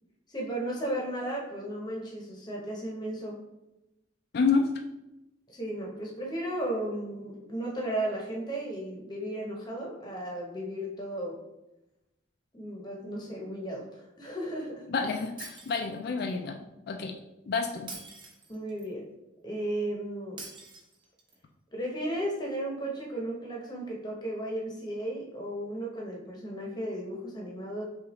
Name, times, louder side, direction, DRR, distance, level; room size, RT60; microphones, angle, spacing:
voice 1, 0.3-3.4 5.5-11.4 12.5-14.9 18.5-19.1 19.4-20.4 21.7-27.8, right 1 dB, 20° left, -2 dB, 0.8 m, -35 dB
voice 2, 4.3-4.7 14.9-16.6 16.9-17.2 17.5-17.9, left 4 dB, 55° left, 4 dB, 0.3 m, -28 dB
Shatter, 15.4-16.3 17.9-18.9 20.4-21.4, right 3 dB, 25° right, 0.5 m, -45 dB
5.6 x 2.4 x 3.0 m, 0.94 s
head